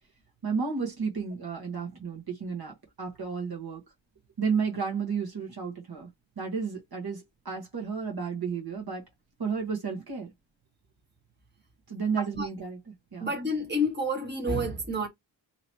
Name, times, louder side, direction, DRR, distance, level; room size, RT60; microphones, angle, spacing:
voice 1, 0.4-3.8 4.4-6.1 6.4-9.0 9.4-10.3 11.9-13.3, right 5 dB, 50° right, 1.2 m, -32 dB
voice 2, 13.2-15.1, equal, 20° right, 1.3 m, -29 dB
2.9 x 2.8 x 4.4 m
wide cardioid pair, 155°, 46 cm